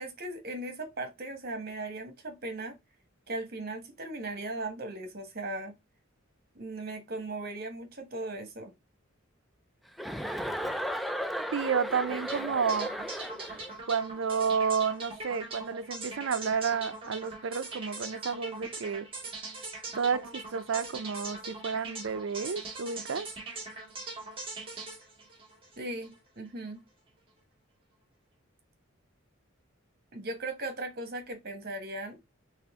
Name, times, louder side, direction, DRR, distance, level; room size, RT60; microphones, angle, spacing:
voice 1, 0.0-2.8 3.3-5.7 6.5-8.7 25.8-26.8 30.1-32.2, right 2 dB, 50° right, 1.3 m, -38 dB
Chuckle chortle, 10.0-13.7, equal, ahead, 0.4 m, -35 dB
voice 2, 11.5-12.9 13.9-19.1 19.9-23.3, right 6 dB, 70° right, 0.5 m, -31 dB
sound 1, 12.1-26.2, right 3 dB, 25° right, 1.9 m, -41 dB
4.3 x 3.4 x 3.5 m
head